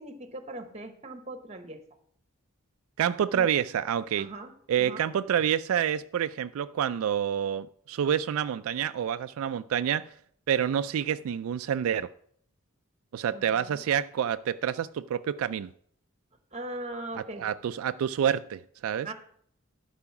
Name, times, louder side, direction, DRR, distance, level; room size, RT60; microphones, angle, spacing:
voice 1, 0.0-1.8 3.3-3.5 4.2-5.0 13.3-13.8 16.5-17.4 19.0-19.1, right 2 dB, 30° right, 1.0 m, -40 dB
voice 2, 3.0-4.3 4.7-10.1 10.5-12.1 13.1-15.7 17.2-19.1, right 9 dB, 75° right, 0.3 m, -28 dB
12.0 x 4.9 x 5.8 m
head